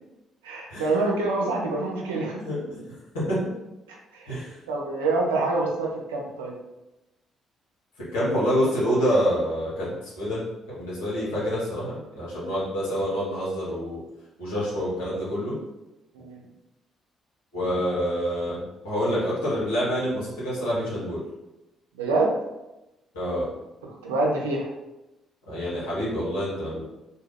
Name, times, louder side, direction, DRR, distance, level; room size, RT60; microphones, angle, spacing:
voice 1, 0.4-2.4 3.9-4.3 4.7-6.6 16.1-16.4 21.9-22.3 24.0-24.7, right 2 dB, 90° right, -1 dB, 0.5 m, -26 dB
voice 2, 2.4-2.8 3.1-3.5 4.3-4.6 8.1-10.4 10.7-14.0 14.4-15.5 17.5-21.2 23.1-23.5 25.5-26.9, equal, 85° left, -9 dB, 1.1 m, -27 dB
2.7 x 2.3 x 3.3 m, 0.97 s
hypercardioid pair, 50°, 0 cm